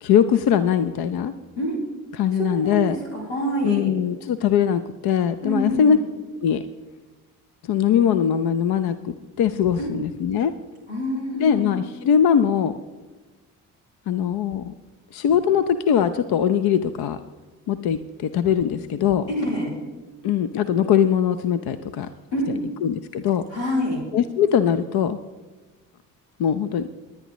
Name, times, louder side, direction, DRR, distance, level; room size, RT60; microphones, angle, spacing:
voice 1, 0.0-1.3 2.1-3.0 3.6-6.0 6.4-6.6 7.6-10.5 11.4-12.8 14.1-14.7 15.1-17.2 17.7-19.3 20.2-22.1 22.8-23.4 24.1-25.2 26.4-26.9, left 8 dB, 55° left, 12 dB, 0.8 m, -21 dB
voice 2, 2.3-3.9 5.4-6.0 9.8-9.9 10.9-11.7 19.3-19.7 22.3-22.7 23.5-24.0, equal, 90° left, -3 dB, 3.9 m, -26 dB
29.5 x 9.9 x 3.1 m, 1.3 s
hypercardioid pair, 45°, 45 cm